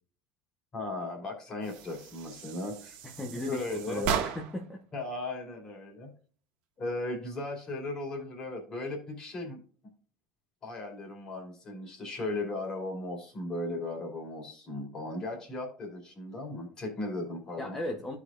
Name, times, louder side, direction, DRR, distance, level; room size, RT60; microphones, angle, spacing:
voice 1, 0.7-3.0 3.5-4.1 4.9-6.1 6.8-9.6 10.6-17.8, left 2 dB, 25° left, 1 dB, 2.6 m, -36 dB
sound 1, 1.6-4.7, right 7 dB, 55° right, 1.3 m, -36 dB
voice 2, 3.0-4.8 17.6-18.2, left 1 dB, 10° left, 0 dB, 0.9 m, -37 dB
14.0 x 5.0 x 2.4 m, 0.43 s
cardioid pair, 165°, 3 cm